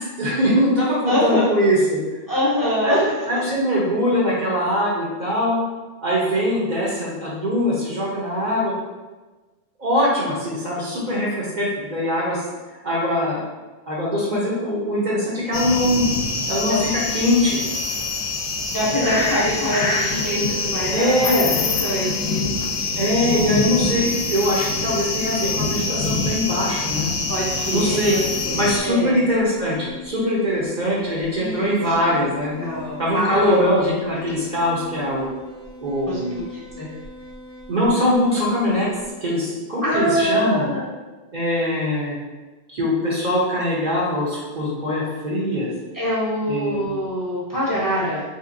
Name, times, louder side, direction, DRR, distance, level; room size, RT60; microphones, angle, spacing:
voice 1, 0.0-2.0 2.8-5.6 6.0-8.7 9.8-12.4 12.8-13.4 13.9-16.0 16.5-17.6 20.9-21.5 23.0-27.1 27.7-28.2 28.5-32.5 33.0-35.3 35.8-36.4 37.7-38.9 39.2-40.7 41.3-42.2 42.7-45.7 46.5-46.8, equal, 50° right, -5 dB, 0.7 m, -22 dB
voice 2, 1.1-1.5 2.3-3.1 16.7-16.9 18.7-22.5 27.3-29.2 31.4-31.9 32.6-33.6 36.1-36.9 39.8-40.8 45.9-48.2, equal, 20° left, -8 dB, 0.7 m, -24 dB
sound 1, 15.5-28.8, left 3 dB, 70° left, 0.7 m, -25 dB
sound 2, 20.1-39.1, left 1 dB, 90° right, 1.1 m, -42 dB
3.4 x 2.8 x 2.5 m, 1.2 s
omnidirectional pair, 1.1 m